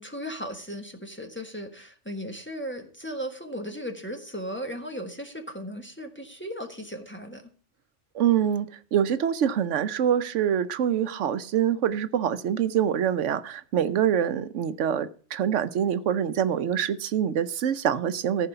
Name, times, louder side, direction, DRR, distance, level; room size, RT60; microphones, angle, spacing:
voice 1, 0.0-7.5, equal, 10° left, 3 dB, 1.3 m, -36 dB
voice 2, 8.1-18.5, right 9 dB, 85° right, 13 dB, 1.0 m, -25 dB
14.5 x 4.9 x 6.7 m, 0.42 s
omnidirectional pair, 1.2 m